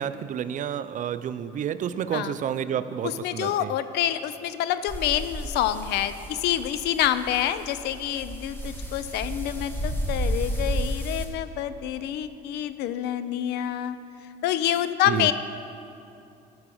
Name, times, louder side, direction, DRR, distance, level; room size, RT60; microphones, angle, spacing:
voice 1, 0.0-3.7 15.1-15.3, right 9 dB, 50° right, 13 dB, 0.5 m, -30 dB
voice 2, 3.0-14.0 14.4-15.3, left 11 dB, 80° left, 13 dB, 0.6 m, -27 dB
sound 1, 4.9-11.2, right 1 dB, 15° left, 1.6 m, -32 dB
14.0 x 6.0 x 7.0 m, 2.7 s
cardioid pair, 110°, 17 cm